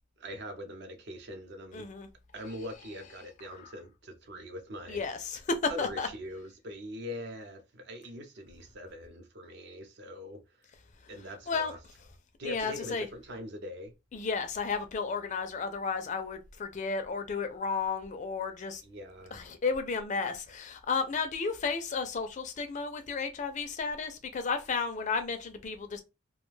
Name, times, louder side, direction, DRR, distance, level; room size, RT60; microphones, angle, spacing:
voice 1, 0.2-1.9 2.3-5.0 5.7-10.4 11.1-11.8 12.4-13.9 18.8-19.4, equal, 55° right, 0.5 m, -42 dB
voice 2, 1.7-2.1 3.5-3.7 4.9-6.1 11.5-11.7 12.4-13.1 14.1-18.8 19.3-26.0, left 4 dB, 35° left, 0.4 m, -33 dB
2.3 x 2.2 x 3.0 m
head